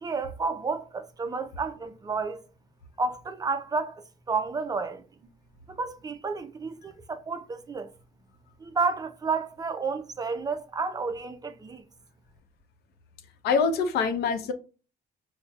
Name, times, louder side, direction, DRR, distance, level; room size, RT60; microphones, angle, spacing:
voice 1, 0.0-2.4 3.0-5.0 5.7-7.9 8.6-11.8, right 4 dB, 20° right, 0.3 m, -31 dB
voice 2, 13.4-14.5, left 5 dB, 70° left, 0.6 m, -24 dB
5.3 x 2.1 x 2.2 m
cardioid pair, 110°, 17 cm